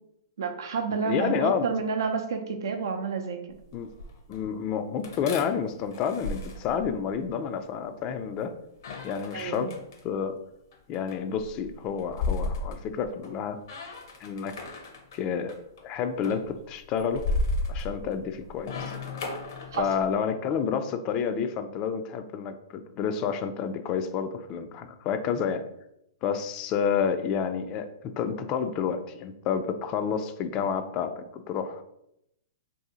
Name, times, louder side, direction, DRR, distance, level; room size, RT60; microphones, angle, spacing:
voice 1, 0.4-3.4 9.3-9.7 19.7-20.1, right 5 dB, 70° right, 5 dB, 0.5 m, -29 dB
voice 2, 1.0-1.7 3.7-3.9 4.3-8.5 9.0-9.7 10.0-10.4 10.9-13.6 14.2-14.5 15.1-15.6 15.8-17.3 17.7-18.9 19.8-25.6 26.2-31.8, left 7 dB, 35° left, 8 dB, 0.3 m, -29 dB
sound 1, 3.5-4.4 5.0-7.3 8.8-10.0 10.7-13.4 13.6-15.2 15.5-15.8 16.2-20.1, left 2 dB, 60° left, 0.7 m, -34 dB
2.7 x 2.6 x 3.7 m, 0.80 s
hypercardioid pair, 125°, 2 cm